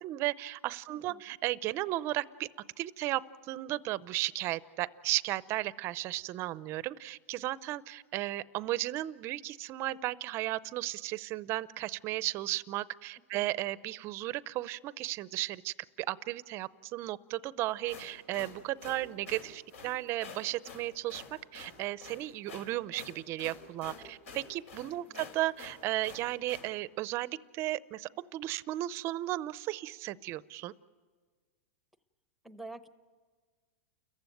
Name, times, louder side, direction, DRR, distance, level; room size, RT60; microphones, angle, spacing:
voice 1, 0.0-2.5 2.8-3.2 3.5-21.2 21.5-30.7, right 16 dB, 35° right, 18 dB, 0.6 m, -35 dB
voice 2, 0.9-1.4 13.3-13.5 23.9-24.2 24.9-25.3 32.4-32.9, right 2 dB, ahead, 11 dB, 0.8 m, -49 dB
sound 1, 17.7-26.7, left 5 dB, 75° left, 4.6 m, -48 dB
29.5 x 15.0 x 9.2 m, 1.5 s
supercardioid pair, 145°, 8 cm